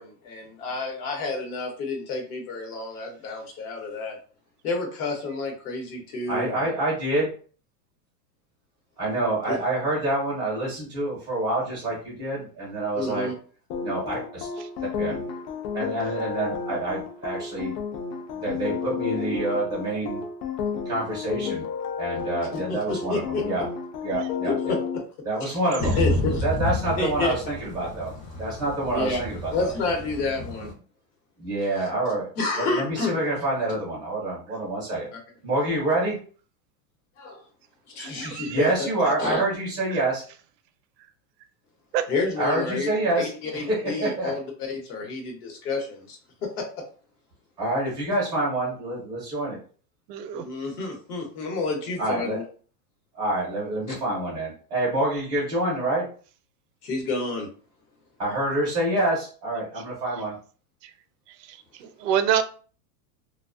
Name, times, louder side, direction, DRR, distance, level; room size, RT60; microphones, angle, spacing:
voice 1, 0.0-4.2 4.6-6.6 9.5-9.6 12.9-13.3 22.7-23.4 24.4-24.5 25.4-25.6 26.0-26.4 27.0-27.3 28.9-29.2 29.5-30.7 32.4-33.2 37.2-37.4 37.9-38.9 39.2-39.4 42.1-42.9 43.4-46.7 50.3-52.4 53.9-54.0 56.8-57.5, left 3 dB, 60° left, 1.0 m, -29 dB
voice 2, 6.3-7.3 9.0-13.3 13.8-14.5 14.8-15.2 15.7-17.7 18.3-20.2 20.9-21.7 22.0-23.7 24.0-24.8 25.2-26.0 26.4-28.1 28.4-29.7 31.4-32.3 32.6-35.1 35.4-36.2 38.5-40.2 42.4-43.3 43.6-44.4 47.6-49.6 52.0-52.4 53.1-56.1 58.2-60.3, right 1 dB, 10° right, 0.4 m, -27 dB
sound 1, 13.7-25.0, left 6 dB, 80° left, 0.7 m, -32 dB
Thunder / Rain, 25.8-30.7, left 1 dB, 25° left, 0.7 m, -30 dB
voice 3, 38.0-38.6 41.9-42.0 50.1-50.4 62.0-62.4, right 9 dB, 75° right, 0.6 m, -25 dB
2.4 x 2.2 x 2.4 m
supercardioid pair, 155°, 49 cm